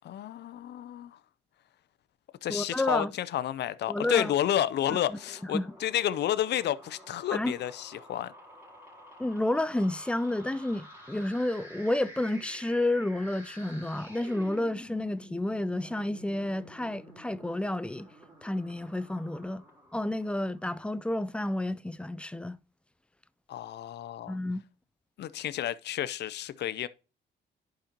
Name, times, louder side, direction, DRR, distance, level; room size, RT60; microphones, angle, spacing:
voice 1, 0.0-1.2 2.4-8.3 23.5-24.4 25.2-26.9, left 11 dB, 60° left, 0.5 m, -31 dB
voice 2, 2.5-3.1 3.9-4.3 4.9-5.2 5.5-5.7 7.3-7.6 9.2-18.1 18.4-19.6 19.9-22.6 24.3-24.6, left 1 dB, 5° left, 0.4 m, -30 dB
sound 1, 4.4-20.8, equal, 10° right, 3.5 m, -50 dB
11.0 x 5.1 x 2.9 m
cardioid pair, 90°, 20 cm